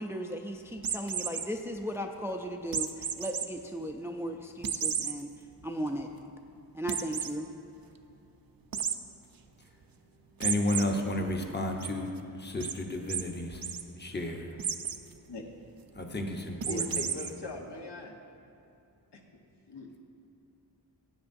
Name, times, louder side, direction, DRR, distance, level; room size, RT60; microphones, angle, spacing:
voice 1, 0.0-5.3 5.6-6.1 6.7-7.5, equal, 5° right, 4 dB, 0.4 m, -36 dB
sound 1, 0.8-1.5 2.7-3.5 3.9-4.0 4.6-5.1 5.6-5.7 6.0-6.1 6.9-7.3 8.7-9.0 10.4-10.8 11.3-11.9 12.6-12.7 13.1-13.2 13.5-13.8 14.6-15.0 16.6-17.3, right 7 dB, 55° right, 0.5 m, -32 dB
voice 2, 10.4-12.1 12.4-13.6 14.0-14.5 16.0-17.0, left 1 dB, 25° left, 2 dB, 0.9 m, -32 dB
voice 3, 16.7-18.2 19.1-19.2 19.7-19.9, left 1 dB, 75° left, 0 dB, 1.2 m, -40 dB
16.0 x 8.6 x 2.6 m, 2.7 s
wide cardioid pair, 85°, 41 cm